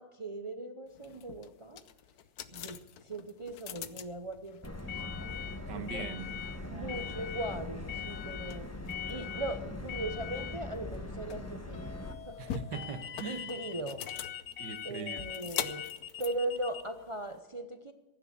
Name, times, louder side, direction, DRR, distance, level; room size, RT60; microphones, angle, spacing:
voice 1, 0.0-1.8 2.5-2.8 3.0-4.8 5.1-5.4 5.7-6.0 6.7-8.7 9.1-12.0 12.3-12.5 13.2-14.0 14.8-15.9 16.2-17.9, right 1 dB, 55° right, 7 dB, 0.3 m, -39 dB
sound 1, 0.9-17.4, left 11 dB, 70° left, 1.2 m, -42 dB
Subway metro underground, 4.6-12.1, left 1 dB, 10° left, 0.9 m, -41 dB
voice 2, 5.7-6.3 6.7-7.2 12.4-13.5 14.6-15.3, right 6 dB, 85° right, 8 dB, 1.8 m, -41 dB
sound 2, 8.4-8.8 11.7-16.8, left 9 dB, 50° left, 1.1 m, -46 dB
15.5 x 9.8 x 7.1 m, 1.2 s
omnidirectional pair, 1.8 m